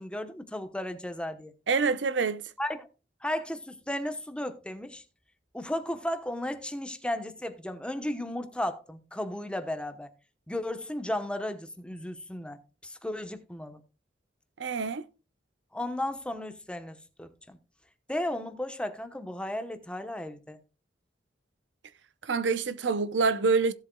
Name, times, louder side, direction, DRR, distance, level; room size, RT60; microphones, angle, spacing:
voice 1, 0.0-1.5 2.6-2.9 3.2-5.0 5.5-10.1 10.5-13.8 15.7-17.6 18.1-20.6, left 1 dB, 5° left, 0.9 m, -34 dB
voice 2, 1.7-2.4 14.6-15.0 22.2-23.7, right 4 dB, 90° right, 0.6 m, -26 dB
16.5 x 7.8 x 2.2 m
head